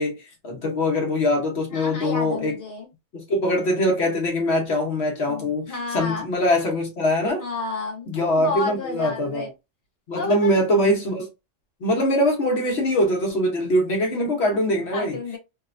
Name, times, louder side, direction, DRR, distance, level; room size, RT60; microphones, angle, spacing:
voice 1, 0.0-2.6 3.1-7.4 8.1-9.5 10.1-11.3 11.8-15.2, left 1 dB, 65° left, 1.0 m, -23 dB
voice 2, 1.7-2.9 5.3-6.3 7.4-8.1 8.4-9.5 10.1-10.6 14.9-15.4, left 3 dB, 15° left, 0.9 m, -30 dB
3.1 x 2.0 x 2.4 m
omnidirectional pair, 1.3 m